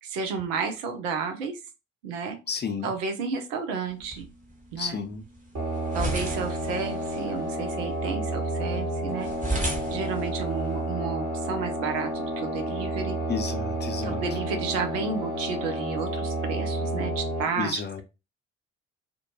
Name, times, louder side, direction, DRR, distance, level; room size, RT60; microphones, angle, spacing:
voice 1, 0.0-1.6 2.0-2.4 2.8-4.3 4.7-5.0 5.9-9.3 9.9-13.2 14.0-17.8, right 5 dB, 75° right, 6 dB, 0.6 m, -32 dB
voice 2, 2.5-2.9 4.8-5.2 13.3-14.2 17.6-18.0, left 6 dB, 25° left, 6 dB, 0.6 m, -31 dB
sound 1, 3.9-10.9, right 1 dB, 20° right, 1.1 m, -36 dB
sound 2, 5.5-17.4, right 1 dB, 45° right, 1.4 m, -30 dB
2.5 x 2.2 x 2.8 m, 0.27 s
figure-of-eight pair, 45°, 38 cm